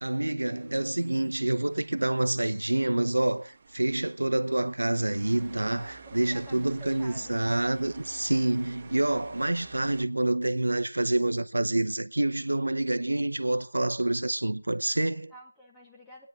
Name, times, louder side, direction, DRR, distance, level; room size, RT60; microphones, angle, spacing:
voice 1, 0.0-15.3, right 2 dB, 85° right, 0.9 m, -27 dB
sound 1, 0.6-10.0, right 4 dB, 25° right, 1.4 m, -50 dB
voice 2, 6.0-7.4 15.3-16.3, equal, 5° left, 1.3 m, -49 dB
28.0 x 9.5 x 2.5 m
figure-of-eight pair, 170°, 0 cm